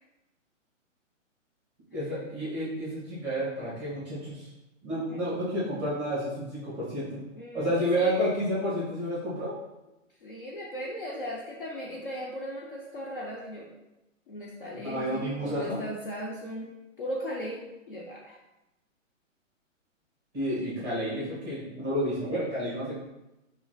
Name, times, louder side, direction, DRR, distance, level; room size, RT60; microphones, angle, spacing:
voice 1, 1.9-4.5 4.8-7.2 7.5-9.5 14.7-15.8 20.3-23.0, equal, 5° right, -9 dB, 0.9 m, -30 dB
voice 2, 7.3-8.1 10.2-13.7 14.3-16.7 17.0-18.4, equal, 45° left, -4 dB, 0.5 m, -37 dB
3.9 x 2.6 x 2.2 m, 0.95 s
hypercardioid pair, 160°, 39 cm